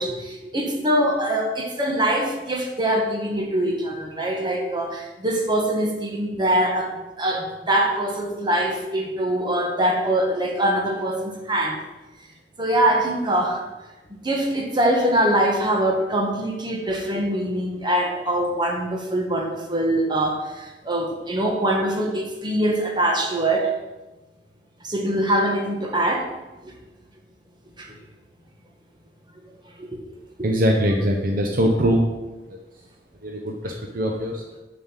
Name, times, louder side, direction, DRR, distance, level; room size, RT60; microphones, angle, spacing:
voice 1, 0.0-11.8 12.6-13.6 14.1-23.7 24.8-26.3 27.8-27.9 29.8-30.0, right 1 dB, 25° right, 1 dB, 1.7 m, -23 dB
voice 2, 30.4-32.1 32.5-32.6 33.2-34.4, equal, 50° right, 2 dB, 0.9 m, -22 dB
7.4 x 6.9 x 7.4 m, 1.1 s
head